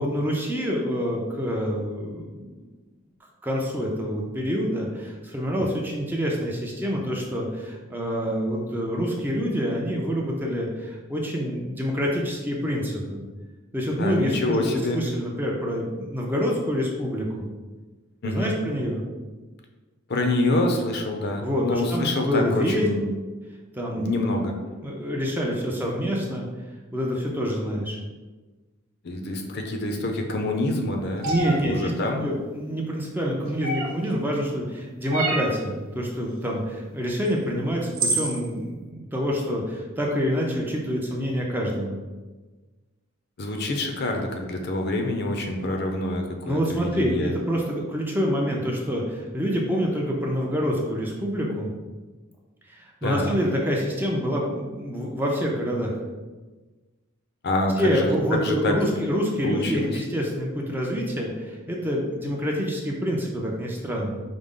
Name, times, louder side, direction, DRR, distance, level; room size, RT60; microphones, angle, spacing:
voice 1, 0.0-2.7 3.4-13.2 13.7-17.5 18.2-19.0 21.4-22.8 23.7-24.1 24.8-26.5 26.9-28.0 31.2-42.0 46.5-51.7 52.7-55.9 57.8-64.2, equal, 10° right, -2 dB, 0.4 m, -27 dB
voice 2, 14.0-15.0 18.2-18.6 20.1-23.1 24.0-24.5 29.0-31.3 31.5-32.3 43.4-47.3 53.0-53.4 57.4-58.7 59.4-60.0, left 2 dB, 50° left, 3 dB, 0.5 m, -26 dB
sound 1, 31.2-31.6 33.6-34.1 35.1-35.6 37.3-37.4 37.9-38.4, right 2 dB, 80° right, 0.9 m, -26 dB
4.9 x 2.1 x 3.6 m, 1.3 s
head